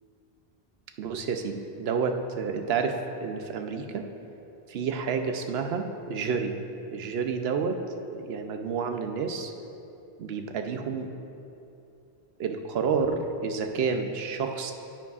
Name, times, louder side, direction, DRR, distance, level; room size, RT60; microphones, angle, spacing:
voice 1, 1.0-4.1 4.7-6.5 6.9-7.8 8.1-9.5 10.2-11.1 12.4-14.7, right 5 dB, 75° right, 6 dB, 0.9 m, -29 dB
10.0 x 9.5 x 2.4 m, 2.8 s
omnidirectional pair, 1.1 m